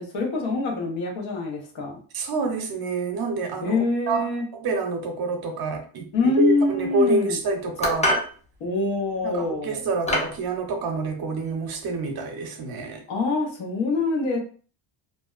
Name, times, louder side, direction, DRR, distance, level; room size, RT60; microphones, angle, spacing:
voice 1, 0.0-2.0 3.6-4.5 6.1-7.4 8.6-9.8 13.1-14.4, left 3 dB, 75° left, 0 dB, 0.9 m, -25 dB
voice 2, 2.1-3.8 4.1-8.1 9.2-13.0, right 3 dB, 50° right, 4 dB, 0.6 m, -27 dB
sound 1, 7.8-8.3 9.3-9.5 10.1-10.4, equal, 15° left, 0.5 m, -24 dB
2.5 x 2.1 x 2.3 m, 0.42 s
cardioid pair, 125°, 47 cm